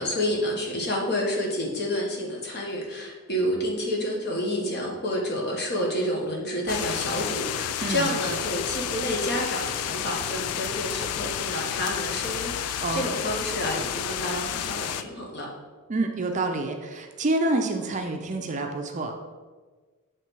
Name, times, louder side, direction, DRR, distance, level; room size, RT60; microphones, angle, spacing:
voice 1, 0.0-15.5, equal, 45° left, -1 dB, 1.3 m, -29 dB
sound 1, 6.7-15.0, left 10 dB, 80° left, 0.3 m, -31 dB
voice 2, 7.8-8.1 12.8-13.0 15.9-19.1, right 2 dB, 35° right, 4 dB, 0.5 m, -27 dB
7.2 x 3.2 x 4.5 m, 1.4 s
head